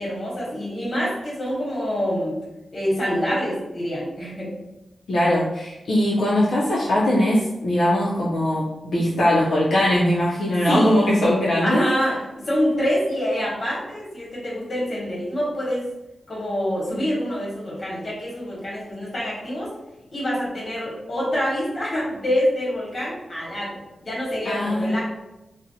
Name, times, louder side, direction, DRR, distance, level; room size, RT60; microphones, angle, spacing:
voice 1, 0.0-2.3 2.7-4.5 10.7-11.1 11.6-12.2 12.5-15.8 16.3-19.7 20.1-23.8 24.0-25.0, equal, 45° left, -6 dB, 1.1 m, -26 dB
voice 2, 5.1-11.9 24.5-25.0, left 1 dB, 80° left, -6 dB, 0.4 m, -20 dB
2.5 x 2.0 x 2.6 m, 0.96 s
wide cardioid pair, 115°, 0 cm